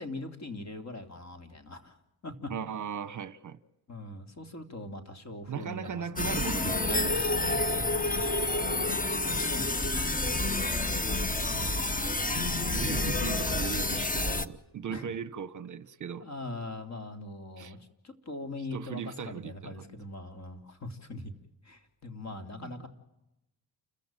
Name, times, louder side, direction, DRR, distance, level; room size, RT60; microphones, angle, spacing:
voice 1, 0.0-2.0 2.2-2.5 3.9-6.5 8.1-10.2 11.4-12.0 14.9-15.1 16.2-21.3 21.6-22.9, left 2 dB, 40° left, 3.4 m, -42 dB
voice 2, 2.5-3.6 5.5-7.7 12.3-16.3 17.6-17.7 18.7-19.9 22.6-22.7, right 8 dB, 45° right, 1.0 m, -38 dB
sound 1, 6.2-14.5, left 2 dB, 20° left, 1.2 m, -29 dB
29.5 x 15.0 x 9.1 m
cardioid pair, 100°, 40 cm